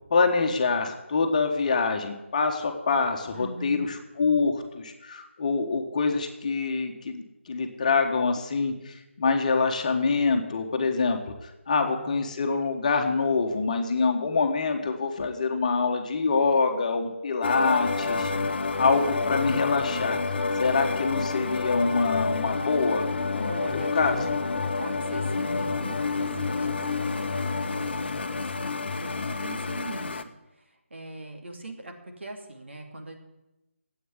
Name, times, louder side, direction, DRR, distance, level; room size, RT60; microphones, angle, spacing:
voice 1, 0.1-18.3 18.8-20.2 20.6-23.1 23.4-24.2, left 4 dB, 35° left, 4 dB, 1.4 m, -25 dB
voice 2, 3.3-3.9 11.8-12.2 18.0-18.9 23.5-24.4 24.8-33.2, right 2 dB, 60° right, 3 dB, 2.8 m, -41 dB
sound 1, 17.4-30.2, left 4 dB, 50° left, 1.0 m, -29 dB
13.0 x 8.6 x 9.7 m, 0.96 s
figure-of-eight pair, 155°, 7 cm